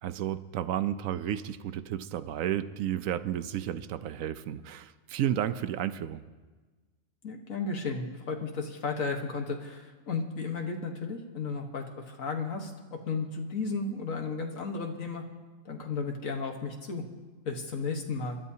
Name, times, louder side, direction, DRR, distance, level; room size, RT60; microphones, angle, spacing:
voice 1, 0.0-6.2, right 10 dB, 80° right, 12 dB, 1.0 m, -32 dB
voice 2, 7.2-15.2 15.6-17.0 17.4-18.4, left 4 dB, 75° left, 3 dB, 1.7 m, -34 dB
28.0 x 12.0 x 2.8 m, 1.3 s
omnidirectional pair, 1.4 m